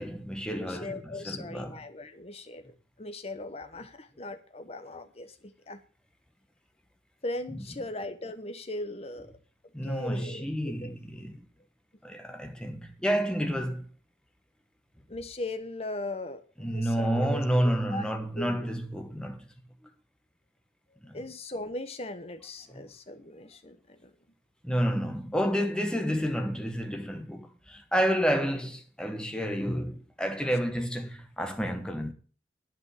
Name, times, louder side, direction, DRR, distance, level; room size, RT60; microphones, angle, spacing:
voice 1, 0.0-1.7 7.5-7.6 9.7-11.4 12.0-13.9 16.6-19.5 21.0-21.2 22.7-22.9 24.6-32.1, equal, 5° left, 1.2 m, -30 dB
voice 2, 0.6-2.6 3.0-5.8 7.2-9.3 9.8-10.9 15.1-18.0 18.4-18.7 21.1-24.1, left 2 dB, 35° left, 1.1 m, -39 dB
11.0 x 5.4 x 8.2 m
head